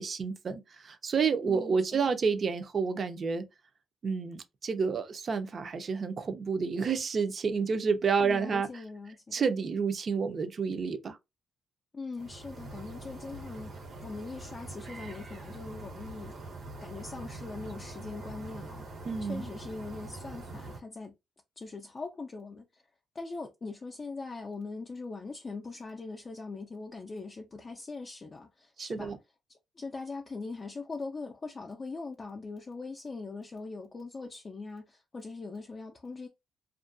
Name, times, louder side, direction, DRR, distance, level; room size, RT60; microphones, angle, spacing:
voice 1, 0.0-3.4 4.0-8.7 9.3-11.2 19.1-19.5 28.8-29.2, right 5 dB, 45° right, 0.5 m, -30 dB
voice 2, 1.4-2.1 8.2-9.4 11.9-13.7 14.0-16.4 16.8-18.9 19.2-21.1 21.6-22.8 23.1-29.1 29.5-36.3, left 3 dB, 30° left, 0.4 m, -41 dB
sound 1, 12.2-20.8, right 2 dB, 80° right, 1.0 m, -44 dB
2.4 x 2.2 x 2.5 m
cardioid pair, 90°, 0 cm